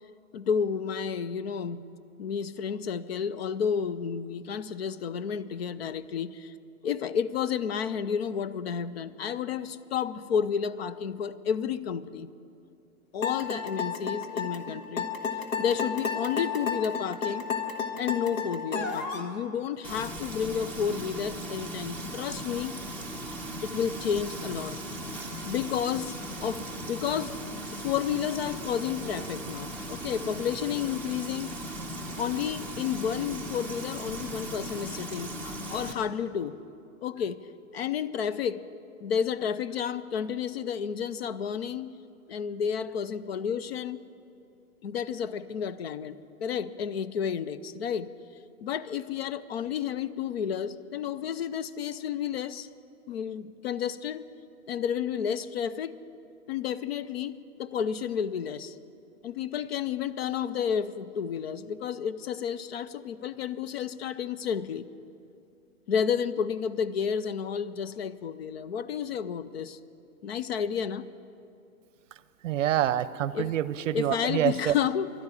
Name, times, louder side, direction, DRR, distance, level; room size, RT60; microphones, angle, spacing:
voice 1, 0.3-1.9 2.2-6.5 6.8-12.3 13.1-15.1 15.6-17.5 18.0-22.8 23.6-24.8 25.5-27.3 27.7-31.5 32.2-36.6 37.0-37.4 37.7-38.6 39.0-41.9 42.3-44.0 44.8-48.1 48.6-52.7 53.1-54.3 54.7-55.9 56.5-58.8 59.2-64.8 65.9-69.8 70.2-71.0 73.3-73.5 73.9-75.1, left 7 dB, 45° left, 15 dB, 0.5 m, -31 dB
sound 1, 13.2-19.3, left 6 dB, 65° left, 1.7 m, -31 dB
Frying (food), 19.8-35.9, right 1 dB, 5° left, 0.8 m, -38 dB
voice 2, 72.4-74.7, right 11 dB, 60° right, 16 dB, 0.6 m, -26 dB
12.0 x 10.5 x 9.7 m, 2.6 s
hypercardioid pair, 150°, 43 cm